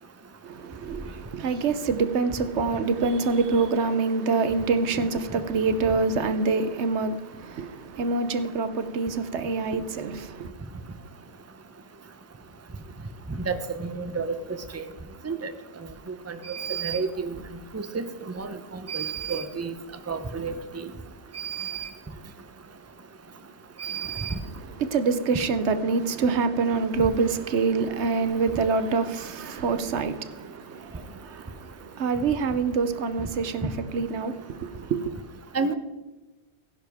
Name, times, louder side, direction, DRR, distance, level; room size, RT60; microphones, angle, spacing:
voice 1, 0.4-10.5 24.0-35.1, right 4 dB, 90° right, 1.1 m, -26 dB
voice 2, 13.8-14.4 14.7-14.8 15.2-15.5 16.3-17.4 17.7-18.1 18.4-18.5 18.9-19.7 20.1-20.9 21.3-21.9 23.8-24.3 35.5-35.7, right 5 dB, 15° right, 0.7 m, -30 dB
16.5 x 10.5 x 3.5 m
omnidirectional pair, 1.1 m